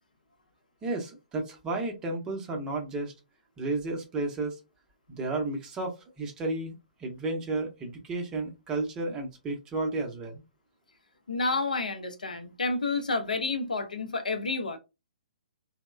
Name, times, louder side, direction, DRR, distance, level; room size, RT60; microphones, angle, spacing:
voice 1, 0.8-3.1 3.6-4.6 5.1-10.4, right 2 dB, 15° right, 0.6 m, -32 dB
voice 2, 11.3-14.8, left 3 dB, 65° left, 0.5 m, -30 dB
2.9 x 2.0 x 2.2 m
figure-of-eight pair, 125°, 5 cm